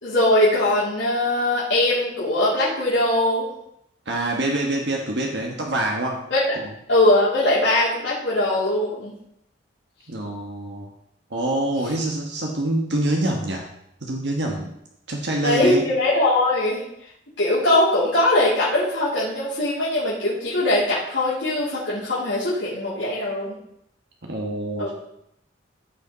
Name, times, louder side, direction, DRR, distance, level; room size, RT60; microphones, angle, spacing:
voice 1, 0.0-3.5 6.3-9.1 15.4-16.8 17.4-23.6 24.8-24.9, left 1 dB, 85° left, -10 dB, 3.3 m, -21 dB
voice 2, 4.1-6.2 10.1-10.9 11.3-13.6 14.0-14.7 15.1-15.8 24.2-24.9, right 1 dB, 65° right, 0 dB, 1.3 m, -25 dB
14.5 x 5.6 x 4.0 m, 0.77 s
head